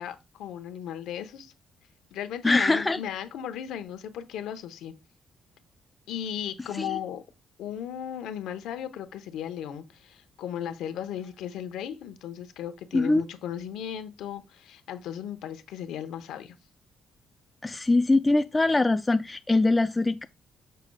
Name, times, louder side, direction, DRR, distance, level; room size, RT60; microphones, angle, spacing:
voice 1, 0.0-1.5 2.1-4.9 6.1-7.2 7.6-16.6, left 9 dB, 85° left, 0.8 m, -36 dB
voice 2, 2.4-3.0 6.7-7.0 12.9-13.2 17.6-20.2, left 2 dB, 20° left, 0.3 m, -23 dB
6.7 x 6.2 x 2.3 m
cardioid pair, 90°, 0 cm